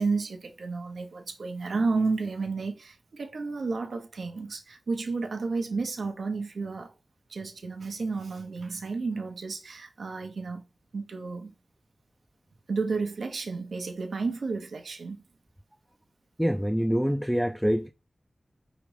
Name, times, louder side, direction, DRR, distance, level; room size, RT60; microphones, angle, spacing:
voice 1, 0.0-6.9 7.3-10.6 10.9-11.5 12.7-15.2, right 4 dB, 85° right, 0.7 m, -31 dB
voice 2, 16.4-17.9, equal, ahead, 0.3 m, -25 dB
4.9 x 3.0 x 3.2 m
wide cardioid pair, 100°, 0 cm